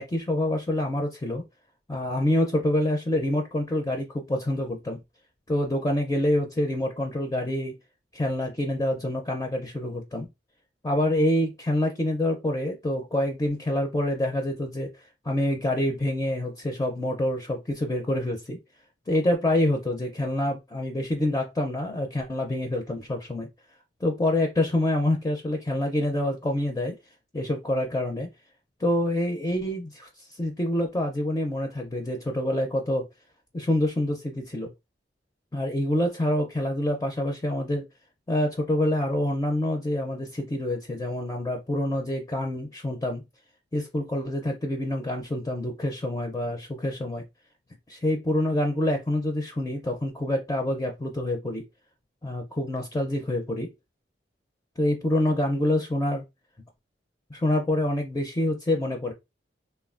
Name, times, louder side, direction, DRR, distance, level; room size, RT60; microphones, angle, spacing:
voice 1, 0.0-1.4 1.9-5.0 5.5-7.8 8.1-10.3 10.8-14.9 15.2-18.6 19.1-23.5 24.0-27.0 27.3-28.3 28.8-30.1 30.4-33.1 33.5-34.7 35.5-37.9 38.3-43.2 43.7-47.2 47.9-51.6 52.2-53.7 54.8-56.2 57.3-59.1, left 1 dB, 20° left, 0.4 m, -26 dB
3.2 x 2.2 x 2.4 m
head